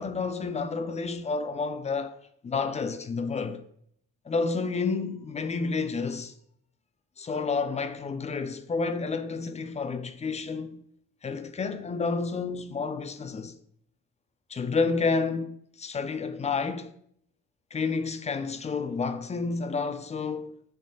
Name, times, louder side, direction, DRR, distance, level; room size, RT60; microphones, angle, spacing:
voice 1, 0.0-2.2 2.4-3.6 4.3-6.3 7.2-10.8 11.2-13.6 14.5-16.9 17.7-20.5, left 4 dB, 25° left, 0.4 m, -30 dB
6.4 x 3.1 x 2.7 m
cardioid pair, 90°, 30 cm